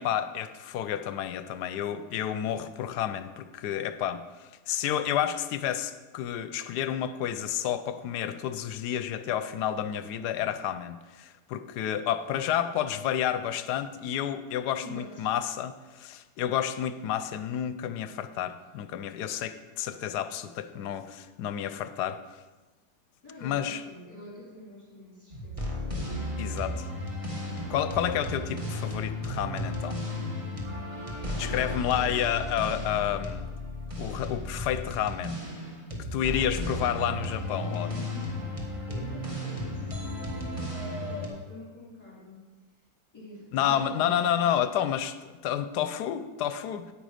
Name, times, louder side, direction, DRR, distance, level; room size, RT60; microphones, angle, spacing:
voice 1, 0.0-22.2 23.4-23.8 26.4-26.9 27.7-30.0 31.4-33.5 34.0-35.4 36.1-37.9 43.5-46.9, left 10 dB, 80° left, 12 dB, 1.1 m, -30 dB
voice 2, 14.8-15.3 23.2-25.6 31.3-32.2 36.4-36.9 37.7-42.4 43.1-44.5, left 1 dB, 10° left, -5 dB, 3.2 m, -45 dB
sound 1, 25.3-41.3, left 1 dB, 20° right, 1.5 m, -34 dB
9.0 x 9.0 x 5.0 m, 1.2 s
omnidirectional pair, 1.8 m